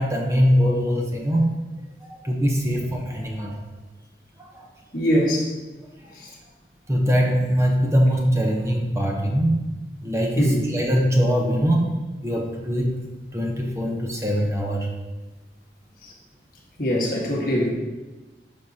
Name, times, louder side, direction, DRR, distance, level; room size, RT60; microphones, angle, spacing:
voice 1, 0.0-1.6 2.1-3.6 4.4-4.7 6.9-9.7 10.0-13.0 13.3-14.9, equal, 15° right, 0 dB, 0.8 m, -22 dB
voice 2, 4.9-5.5 6.1-6.3 10.4-10.7 16.0-16.1 16.8-17.7, equal, 50° left, -2 dB, 1.5 m, -22 dB
11.5 x 5.2 x 2.8 m, 1.1 s
head